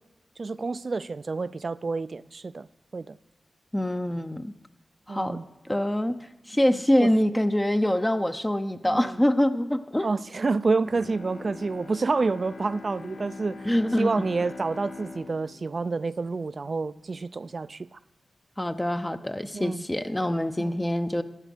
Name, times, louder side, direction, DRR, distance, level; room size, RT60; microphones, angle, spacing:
voice 1, 0.4-3.2 5.1-5.4 7.0-7.1 8.8-9.2 10.0-13.7 14.0-18.0 19.5-19.8 20.6-20.7, right 3 dB, 55° right, 0.4 m, -29 dB
voice 2, 3.7-4.6 5.1-10.1 13.6-14.1 18.6-21.2, left 1 dB, 15° left, 0.7 m, -25 dB
Bowed string instrument, 10.8-17.0 17.4-17.5, left 3 dB, 65° left, 0.9 m, -43 dB
13.0 x 8.8 x 5.0 m
cardioid pair, 40°, 0 cm